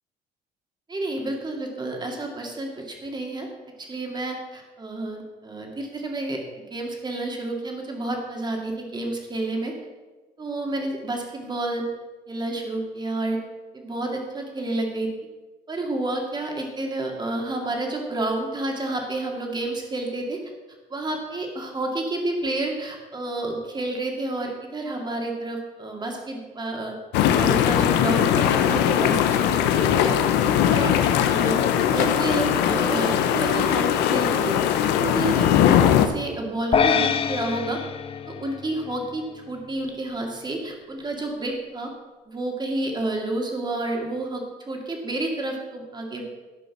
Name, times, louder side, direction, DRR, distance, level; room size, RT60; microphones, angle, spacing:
voice 1, 0.9-3.5 3.8-9.7 10.4-11.9 12.3-13.4 13.7-15.1 15.7-20.4 20.9-27.0 27.3-30.1 30.7-31.0 31.3-34.6 35.0-37.8 38.3-41.9 42.3-46.2, right 2 dB, 25° right, 1 dB, 2.3 m, -30 dB
sound 1, 27.1-36.1, left 9 dB, 90° left, 0.8 m, -20 dB
sound 2, 36.7-39.2, left 7 dB, 35° left, 0.4 m, -25 dB
13.0 x 5.3 x 5.8 m, 1.3 s
cardioid pair, 100°, 17 cm